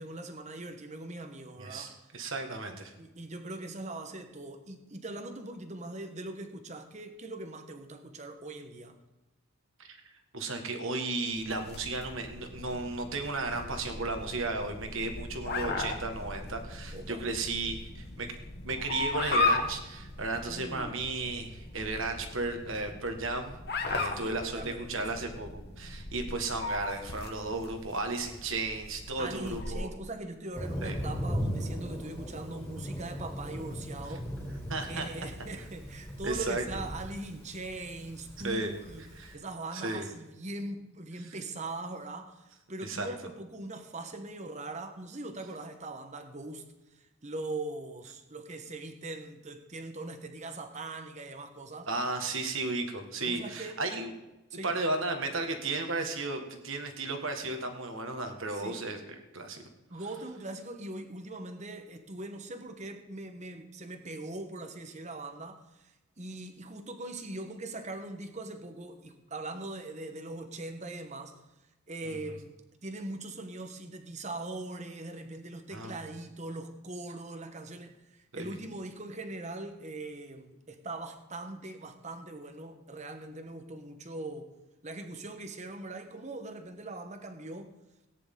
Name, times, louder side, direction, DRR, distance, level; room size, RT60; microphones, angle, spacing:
voice 1, 0.0-2.3 3.0-9.0 16.9-17.2 20.4-21.0 24.0-25.2 27.7-28.0 29.2-34.3 34.9-46.6 46.9-51.9 53.2-53.8 54.5-54.7 58.5-58.9 59.9-71.4 71.9-72.5 72.8-84.5 84.8-87.7, right 2 dB, 30° right, 6 dB, 1.2 m, -41 dB
voice 2, 1.6-2.9 9.9-10.0 10.3-18.3 18.6-23.5 23.9-29.9 30.8-31.0 34.7-35.1 36.2-36.6 38.4-38.7 39.1-39.3 39.7-40.0 41.2-41.3 42.8-43.1 51.9-54.1 54.6-59.6 72.0-72.2 75.7-76.0 78.3-78.5, right 3 dB, 65° right, 5 dB, 1.7 m, -34 dB
sound 1, 11.3-29.7, left 3 dB, 45° left, 1.3 m, -37 dB
Thunder, 30.5-39.3, equal, 10° left, 3.6 m, -38 dB
18.0 x 10.0 x 3.8 m, 0.99 s
head